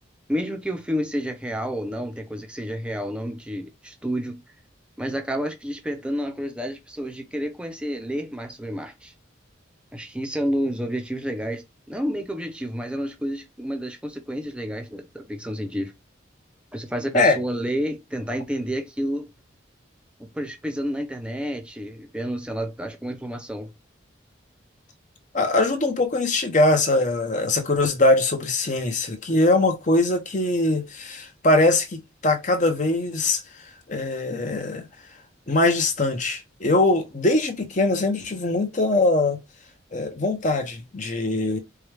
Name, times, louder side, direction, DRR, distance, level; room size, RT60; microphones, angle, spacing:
voice 1, 0.3-4.4 5.0-9.1 9.9-15.9 16.7-19.3 20.2-23.7, equal, 5° right, 0.6 m, -30 dB
voice 2, 25.3-34.8 35.5-39.4 39.9-41.6, left 2 dB, 40° left, 0.8 m, -22 dB
4.6 x 2.3 x 3.3 m
head